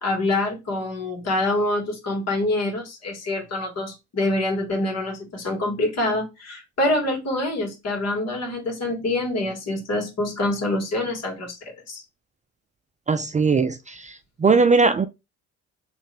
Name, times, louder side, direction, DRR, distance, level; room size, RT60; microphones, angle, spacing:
voice 1, 0.0-11.6 11.9-12.0, left 2 dB, 55° left, 2.0 m, -26 dB
voice 2, 13.1-14.1 14.4-15.1, right 4 dB, 25° right, 0.4 m, -19 dB
3.2 x 2.6 x 3.4 m
cardioid pair, 90°, 30 cm